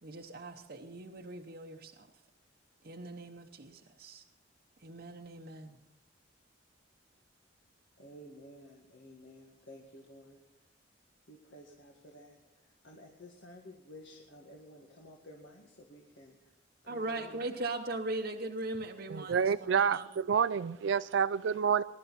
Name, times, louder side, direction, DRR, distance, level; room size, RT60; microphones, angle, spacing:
voice 1, 0.0-2.1 2.8-4.2 4.8-5.8 16.9-20.1, right 2 dB, 50° right, 0.9 m, -40 dB
voice 2, 8.0-10.4 11.3-16.5 16.8-17.7, equal, 70° left, 1.9 m, -53 dB
voice 3, 19.1-21.8, right 7 dB, 65° right, 0.4 m, -28 dB
21.0 x 11.5 x 4.3 m
head